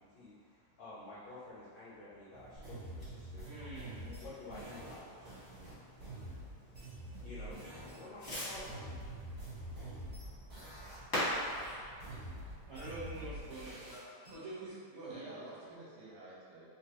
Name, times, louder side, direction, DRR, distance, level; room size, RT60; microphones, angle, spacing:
voice 1, 0.0-10.0, left 2 dB, 80° left, -11 dB, 1.1 m, -52 dB
Fireworks, 2.3-13.7, equal, 55° left, 0.7 m, -44 dB
sound 1, 2.6-8.0 8.2-11.0 11.2-14.3, right 1 dB, 40° right, 1.1 m, -47 dB
voice 2, 3.4-4.1 12.7-15.7, right 2 dB, 60° right, -12 dB, 1.4 m, -46 dB
voice 3, 11.9-12.7 15.1-16.7, right 2 dB, 75° right, -6 dB, 1.9 m, -53 dB
4.7 x 2.2 x 2.9 m, 2.2 s
omnidirectional pair, 3.4 m